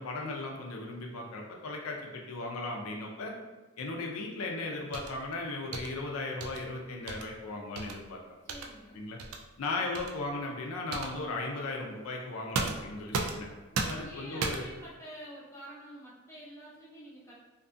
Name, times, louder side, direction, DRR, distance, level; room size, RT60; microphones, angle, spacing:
voice 1, 0.0-3.3 3.8-8.4 8.9-9.2 9.6-13.5 13.9-14.6, left 2 dB, 80° left, 0 dB, 0.4 m, -37 dB
sound 1, 4.9-5.2 5.7-5.9 6.4-6.6 7.1-7.3 7.8-8.0 8.5-8.7 9.2-9.4 9.9-10.1 10.9-11.2 12.5-13.5 13.7-14.1 14.4-14.8, right 4 dB, 85° right, 0.3 m, -34 dB
voice 2, 8.4-9.0 13.7-17.3, equal, 10° left, -7 dB, 0.5 m, -48 dB
2.5 x 2.3 x 2.5 m, 1.2 s
head